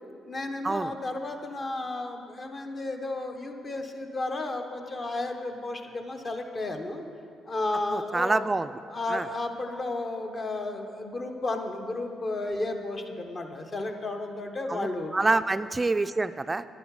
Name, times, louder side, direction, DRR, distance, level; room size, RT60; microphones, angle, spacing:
voice 1, 0.3-7.0 7.5-8.5 8.9-15.1, left 2 dB, 40° left, 4 dB, 1.0 m, -33 dB
voice 2, 7.9-8.7 9.1-9.3 14.7-14.9 15.1-16.6, right 3 dB, 20° right, 12 dB, 0.3 m, -26 dB
10.5 x 10.0 x 4.7 m, 2.4 s
cardioid pair, 90°, 0 cm